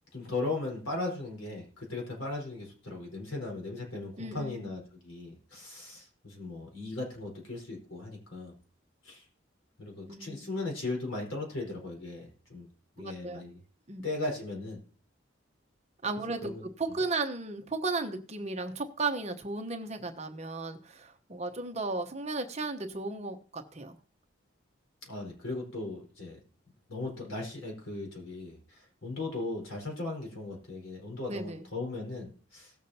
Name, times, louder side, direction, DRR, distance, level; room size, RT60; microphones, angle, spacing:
voice 1, 0.1-8.5 9.0-9.3 9.8-12.7 13.0-13.6 14.0-14.8 16.4-16.6 25.0-26.4 26.9-32.7, left 2 dB, 90° left, -1 dB, 4.5 m, -37 dB
voice 2, 4.2-4.7 10.1-10.4 13.0-13.4 13.9-14.0 16.0-16.5 16.8-24.0 31.3-31.7, right 3 dB, 35° right, 5 dB, 1.0 m, -35 dB
18.0 x 7.2 x 2.8 m, 0.42 s
head